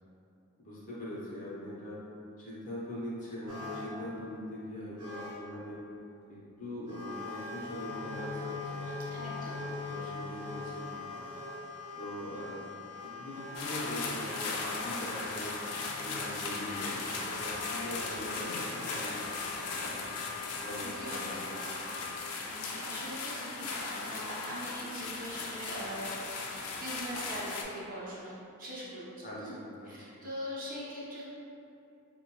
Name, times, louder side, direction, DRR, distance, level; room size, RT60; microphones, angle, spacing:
voice 1, 0.6-2.0 2.4-5.8 6.3-11.2 11.9-12.7 13.0-15.6 16.0-20.1 20.6-21.5 29.2-29.9, left 1 dB, 35° left, -7 dB, 0.7 m, -42 dB
sound 1, 3.5-4.0 4.6-4.7 5.0-5.4 6.9-22.2, left 3 dB, 85° right, 0.7 m, -42 dB
voice 2, 9.1-9.7 20.8-21.7 22.5-26.1 26.8-29.5 29.8-31.3, equal, 40° right, -8 dB, 0.8 m, -42 dB
sound 2, 13.5-27.6, left 3 dB, 85° left, 0.4 m, -38 dB
4.2 x 2.2 x 2.9 m, 2.7 s
head